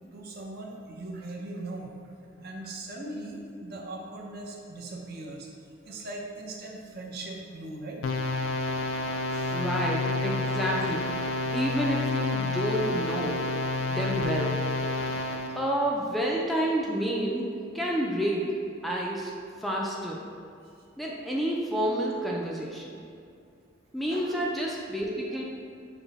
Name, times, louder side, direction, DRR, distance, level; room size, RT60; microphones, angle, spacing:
voice 1, 0.1-5.5 5.8-8.0 9.3-9.6 15.5-15.6 24.1-24.3, right 2 dB, 55° right, -1 dB, 0.6 m, -40 dB
sound 1, 8.0-15.6, left 3 dB, 85° left, 0.4 m, -29 dB
voice 2, 9.5-11.1 11.5-13.4 13.9-14.6 15.6-17.5 17.7-19.3 19.6-20.2 21.0-23.0 23.9-25.4, equal, ahead, -3 dB, 0.3 m, -29 dB
5.8 x 2.1 x 3.9 m, 2.4 s
head